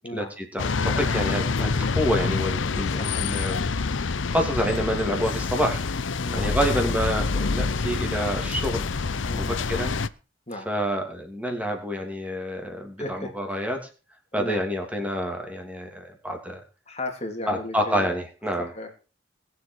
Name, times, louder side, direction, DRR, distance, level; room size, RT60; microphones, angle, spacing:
voice 1, 0.1-3.7 4.0-5.8 6.3-8.9 9.3-9.9 10.6-13.8 14.3-16.6 17.5-18.7, equal, 5° right, 3 dB, 2.9 m, -28 dB
sound 1, 0.6-10.1, left 4 dB, 70° left, 0.7 m, -26 dB
voice 2, 2.8-3.3 6.2-6.8 9.3-9.9 10.5-10.7 13.0-13.6 14.3-14.6 16.9-18.2 18.6-18.9, left 1 dB, 35° left, 4 dB, 2.9 m, -36 dB
20.0 x 7.8 x 4.7 m, 0.35 s
head